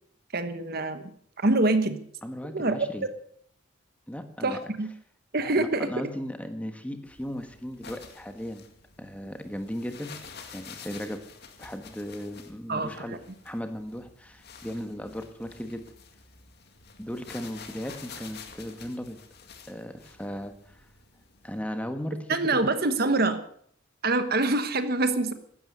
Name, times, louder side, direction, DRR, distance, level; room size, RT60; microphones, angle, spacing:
voice 1, 0.3-1.1 1.4-2.0 2.5-2.8 4.4-4.9 5.3-5.9 12.7-13.2 22.3-23.4 24.0-25.3, right 2 dB, 50° right, 10 dB, 1.3 m, -25 dB
voice 2, 2.2-3.1 4.1-4.6 5.4-8.6 9.0-10.1 10.5-11.2 11.6-13.2 13.4-15.9 17.0-19.2 19.7-20.8 21.4-22.6, equal, 5° left, 7 dB, 1.4 m, -36 dB
sound 1, 7.0-21.6, left 5 dB, 50° left, 2.2 m, -49 dB
16.0 x 12.5 x 6.7 m, 0.63 s
head